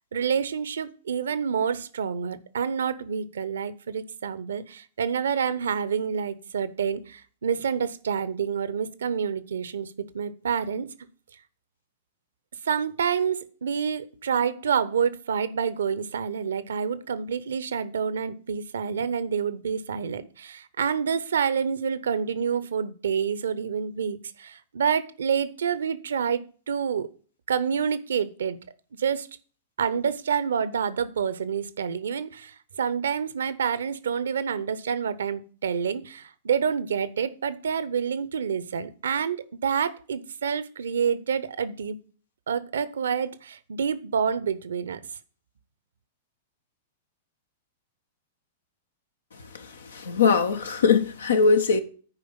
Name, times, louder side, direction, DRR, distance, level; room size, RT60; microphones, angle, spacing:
voice 1, 0.1-10.9 12.6-27.1 27.5-28.6 29.0-29.3 29.8-42.0 42.5-45.0, right 7 dB, 70° right, 0.8 m, -28 dB
voice 2, 49.3-51.8, left 5 dB, 75° left, 1.2 m, -22 dB
9.8 x 5.0 x 7.2 m
figure-of-eight pair, 100°, 0 cm